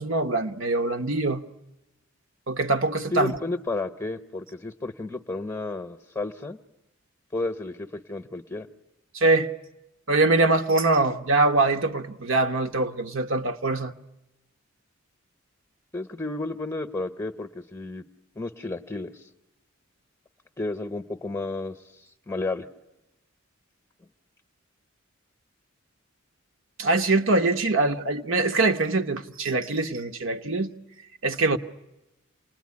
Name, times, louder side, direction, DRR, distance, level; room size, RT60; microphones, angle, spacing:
voice 1, 0.0-1.4 2.5-3.3 9.1-9.5 10.1-13.9 26.8-30.7 31.2-31.6, right 2 dB, 65° right, 1.2 m, -23 dB
voice 2, 3.1-6.6 7.3-8.7 15.9-18.0 18.4-19.2 20.6-21.8 22.3-22.7, left 2 dB, 15° left, 0.9 m, -32 dB
28.5 x 20.5 x 9.7 m
head